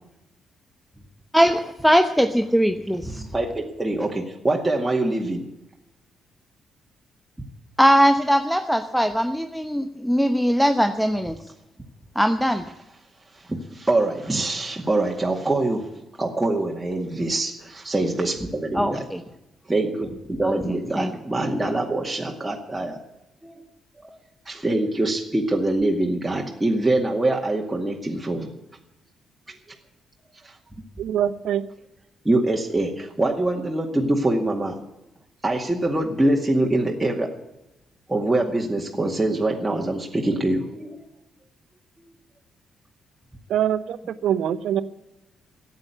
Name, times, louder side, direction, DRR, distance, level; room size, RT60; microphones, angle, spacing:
voice 1, 1.3-3.2 7.8-11.4 12.1-12.6 18.7-19.2 20.4-21.1, equal, ahead, 8 dB, 1.0 m, -20 dB
voice 2, 3.2-5.5 13.5-15.9 16.2-19.0 19.7-23.0 23.4-23.6 24.0-28.5 30.4-30.5 32.2-34.8 35.4-37.3 38.1-41.0, right 2 dB, 15° right, -1 dB, 2.1 m, -24 dB
voice 3, 31.0-31.6 43.5-44.0 44.2-44.8, right 10 dB, 65° right, 15 dB, 0.8 m, -23 dB
14.0 x 8.8 x 9.4 m, 0.94 s
hypercardioid pair, 40°, 0 cm